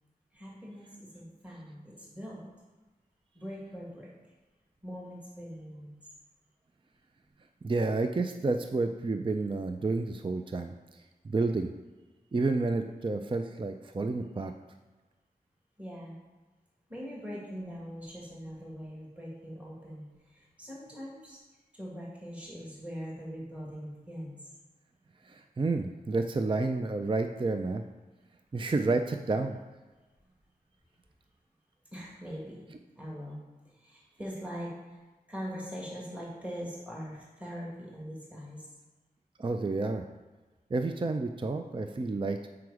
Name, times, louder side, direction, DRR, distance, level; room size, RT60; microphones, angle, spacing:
voice 1, 0.3-2.5 3.3-4.1 4.8-5.9 15.8-16.1 16.9-21.4 21.7-24.4 31.9-35.0 35.3-38.7, equal, 10° right, -5 dB, 1.9 m, -42 dB
voice 2, 7.6-11.7 12.3-14.5 25.2-27.8 28.5-29.6 39.4-40.1 40.7-42.5, right 3 dB, 30° right, 6 dB, 0.4 m, -30 dB
7.7 x 4.8 x 4.8 m, 1.2 s
wide cardioid pair, 75°, 16 cm